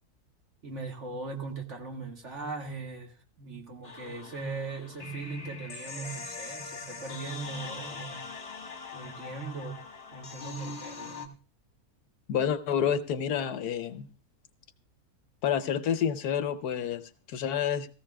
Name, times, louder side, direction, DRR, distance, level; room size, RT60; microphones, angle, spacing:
voice 1, 0.6-8.3 8.9-9.8 10.1-11.4, right 3 dB, 50° right, 1.8 m, -39 dB
sound 1, 3.8-11.3, left 4 dB, 40° left, 1.6 m, -42 dB
voice 2, 12.3-14.1 15.4-17.9, left 8 dB, 80° left, 1.3 m, -29 dB
18.0 x 15.0 x 2.3 m
omnidirectional pair, 1.6 m